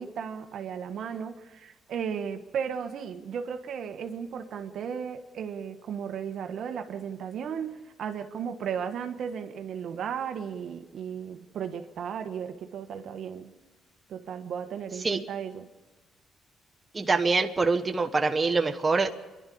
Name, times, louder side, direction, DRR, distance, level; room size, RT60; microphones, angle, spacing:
voice 1, 0.0-13.5 14.1-15.7, right 7 dB, 70° right, 6 dB, 1.4 m, -35 dB
voice 2, 16.9-19.1, right 4 dB, 25° right, 5 dB, 1.3 m, -24 dB
27.5 x 11.5 x 8.6 m, 1.2 s
cardioid pair, 90°, 0 cm